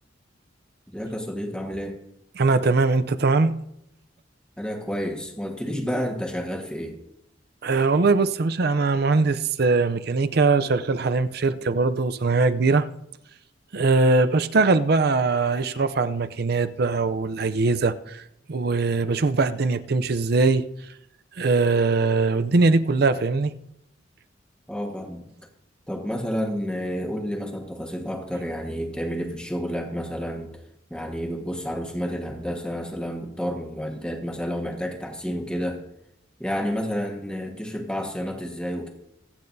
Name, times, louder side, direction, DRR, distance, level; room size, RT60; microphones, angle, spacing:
voice 1, 0.9-2.0 4.6-7.0 24.7-25.3 25.9-30.6 30.9-35.8 36.4-38.9, equal, 5° left, 1.4 m, -30 dB
voice 2, 2.4-3.5 7.6-12.9 13.7-18.2 18.5-20.7 21.4-23.5, right 3 dB, 55° right, 0.5 m, -21 dB
24.0 x 8.8 x 2.7 m
head